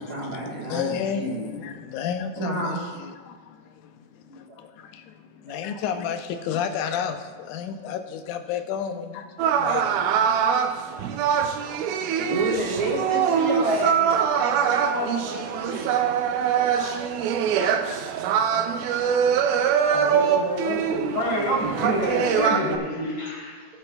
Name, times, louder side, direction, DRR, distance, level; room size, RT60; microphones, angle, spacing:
voice 1, 0.0-1.5 2.3-2.8 4.3-4.6 5.5-5.6 12.3-15.9, right 1 dB, 40° right, -6 dB, 1.5 m, -30 dB
voice 2, 0.6-11.1 11.4-11.7 12.9-13.0 14.6-14.7 15.9-16.0 16.3-18.1, left 8 dB, 85° left, 7 dB, 2.1 m, -33 dB
sound 1, 9.4-22.8, right 7 dB, 85° right, 2.1 m, -23 dB
voice 3, 19.9-23.7, equal, 35° left, -6 dB, 3.7 m, -27 dB
19.0 x 7.8 x 2.3 m, 1.5 s
omnidirectional pair, 3.6 m